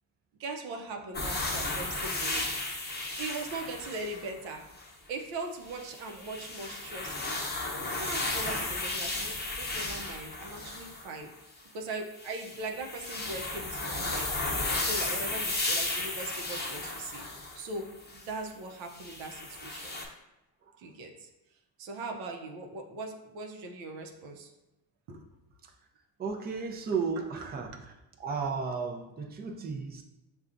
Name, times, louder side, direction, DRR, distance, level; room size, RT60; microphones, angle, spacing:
voice 1, 0.4-2.5 3.2-4.7 5.1-7.4 7.9-11.4 11.7-17.2 17.5-20.0 20.8-21.3 21.8-24.5 25.1-25.3 27.4-27.5, right 3 dB, 80° right, 2 dB, 0.8 m, -40 dB
sound 1, 1.1-4.9 5.7-11.1 12.2-18.3 18.9-20.1, left 2 dB, 20° left, 0.8 m, -34 dB
voice 2, 26.2-27.7 28.2-30.0, right 5 dB, 20° right, 2 dB, 0.5 m, -33 dB
6.6 x 2.3 x 2.5 m, 0.95 s
cardioid pair, 90°, 45 cm